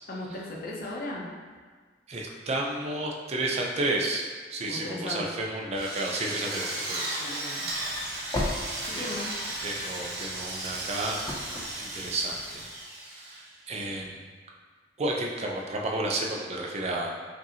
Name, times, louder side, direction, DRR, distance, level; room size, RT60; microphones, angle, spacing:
voice 1, 0.1-1.2 4.7-5.2 7.1-7.7 8.9-9.3, left 1 dB, 55° left, -3 dB, 0.7 m, -36 dB
voice 2, 2.1-4.3 4.5-7.2 8.9-9.1 9.6-11.2 11.8-12.6 13.1-14.2 15.0-17.1, right 2 dB, 35° right, -1 dB, 0.5 m, -31 dB
Drill, 5.7-13.6, right 1 dB, 60° right, 0.8 m, -35 dB
sound 1, 7.7-12.7, left 1 dB, 20° left, 0.5 m, -38 dB
5.1 x 2.7 x 2.8 m, 1.5 s
head